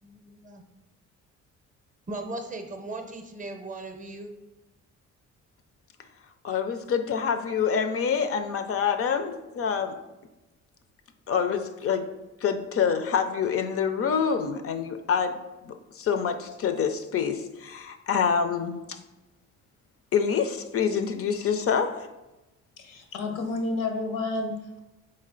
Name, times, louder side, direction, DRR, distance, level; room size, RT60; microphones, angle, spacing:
voice 1, 0.0-0.6 2.1-4.3, right 2 dB, 25° right, 5 dB, 0.6 m, -38 dB
voice 2, 6.4-9.9 11.3-12.0 12.4-15.4 15.6-19.0 20.1-22.1, left 7 dB, 50° left, 8 dB, 0.4 m, -26 dB
voice 3, 22.8-24.8, left 2 dB, 85° left, 4 dB, 0.8 m, -30 dB
3.9 x 3.2 x 3.7 m, 1.0 s
cardioid pair, 90°, 30 cm